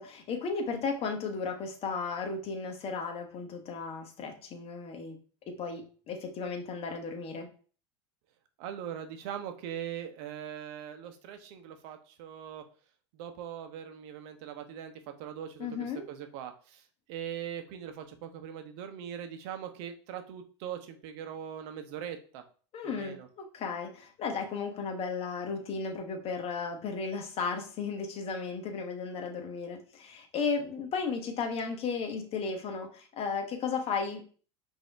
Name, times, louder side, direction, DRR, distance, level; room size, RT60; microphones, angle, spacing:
voice 1, 0.0-5.2 5.5-7.5 15.6-16.1 22.7-34.2, left 5 dB, 40° left, 4 dB, 1.1 m, -35 dB
voice 2, 8.6-12.6 13.1-14.9 15.2-22.4 22.8-23.3, right 9 dB, 65° right, 7 dB, 0.8 m, -41 dB
5.3 x 2.8 x 3.3 m, 0.40 s
hypercardioid pair, 100°, 15 cm